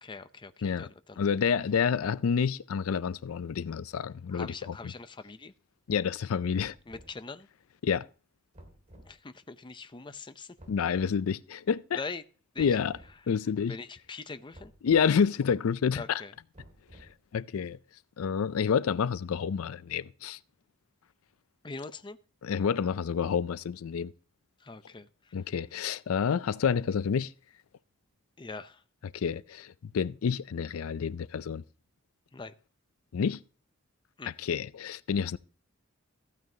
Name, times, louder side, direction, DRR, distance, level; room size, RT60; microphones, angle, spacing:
voice 1, 0.0-1.2 4.3-5.5 6.9-7.5 9.0-10.5 12.0-12.2 12.5-12.8 13.7-14.7 15.9-16.3 21.6-22.2 24.6-25.4 28.4-28.8 32.3-32.5 34.2-34.3, left 4 dB, 25° left, 0.6 m, -42 dB
voice 2, 1.2-4.7 5.9-6.8 7.8-8.1 10.7-12.0 12.6-13.0 13.3-13.8 14.8-16.2 17.3-17.8 18.2-20.4 22.4-24.1 25.3-27.3 29.1-31.6 33.1-33.4 34.3-35.4, left 6 dB, 90° left, 0.4 m, -28 dB
sound 1, 6.5-7.2 8.5-9.1 10.6-11.2 12.6-13.1 14.5-15.1 16.5-17.3, equal, 35° right, 2.4 m, -52 dB
15.0 x 9.2 x 2.8 m
head